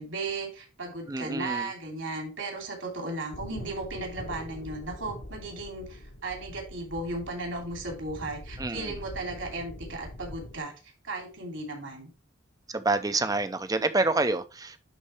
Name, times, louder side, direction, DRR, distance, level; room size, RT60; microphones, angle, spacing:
voice 1, 0.0-10.7 11.0-12.1, right 2 dB, 70° right, 2.9 m, -35 dB
voice 2, 1.1-1.7 8.6-8.9 12.7-14.8, right 2 dB, 20° right, 0.6 m, -27 dB
sound 1, 3.3-10.6, left 1 dB, 60° left, 1.3 m, -43 dB
11.0 x 4.1 x 3.3 m
head